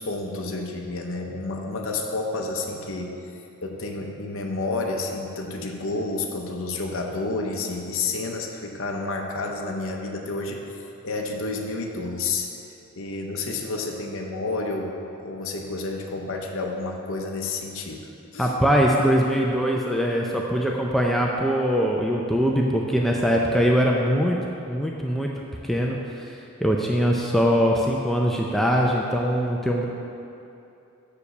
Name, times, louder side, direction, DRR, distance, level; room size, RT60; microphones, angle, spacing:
voice 1, 0.0-3.1 3.6-12.5 13.0-18.6, left 3 dB, 60° left, 1 dB, 0.7 m, -30 dB
voice 2, 18.4-24.4 24.7-25.3 25.6-26.4 26.6-29.9, equal, ahead, -2 dB, 0.4 m, -22 dB
6.7 x 5.0 x 6.9 m, 2.7 s
head